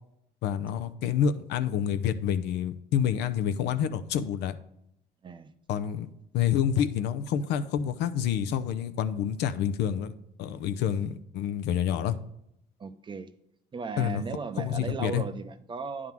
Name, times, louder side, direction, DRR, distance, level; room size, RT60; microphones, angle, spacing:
voice 1, 0.4-4.6 5.7-6.1 6.3-10.1 10.4-12.2 14.0-14.2 14.6-15.2, left 9 dB, 85° left, 11 dB, 0.6 m, -28 dB
voice 2, 12.8-13.3 13.7-16.1, right 4 dB, 30° right, 11 dB, 0.5 m, -36 dB
9.4 x 3.7 x 5.9 m, 0.78 s
cardioid pair, 110°, 17 cm